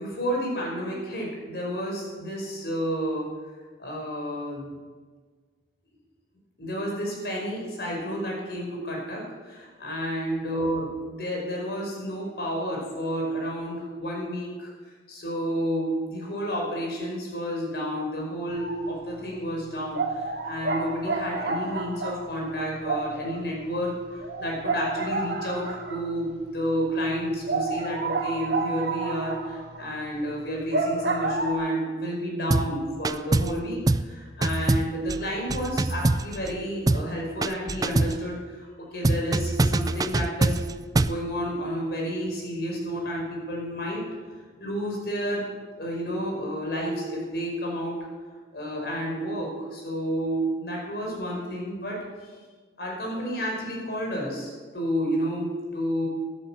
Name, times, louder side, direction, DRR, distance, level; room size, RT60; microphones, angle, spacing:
voice 1, 0.0-3.3 3.8-4.7 6.6-14.7 15.1-23.9 24.2-40.6 40.9-44.0 44.6-45.4 45.8-48.0 48.5-52.3 52.8-56.0, equal, 65° left, -2 dB, 5.4 m, -30 dB
sound 1, 18.5-18.9 19.3-19.4 19.9-26.3 26.7-26.8 27.0-27.1 27.4-31.5, right 3 dB, 80° right, 1.6 m, -30 dB
sound 2, 32.5-32.8 33.0-33.6 33.9-34.1 34.4-36.6 36.9-37.1 37.4-38.2 39.0-41.2, right 2 dB, 20° right, 0.3 m, -24 dB
14.0 x 13.0 x 6.2 m, 1.5 s
head